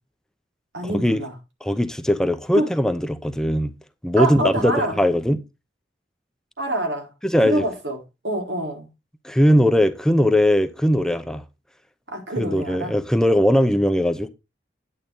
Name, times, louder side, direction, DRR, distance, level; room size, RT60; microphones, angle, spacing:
voice 1, 0.7-1.3 2.5-2.7 4.2-5.0 6.6-7.1 7.4-8.0 8.2-8.9 12.1-12.9, right 1 dB, 85° right, 4.5 m, -26 dB
voice 2, 1.6-3.7 4.0-5.4 7.2-7.6 9.2-11.4 12.4-14.3, equal, 5° left, 0.8 m, -19 dB
9.9 x 9.1 x 3.8 m
head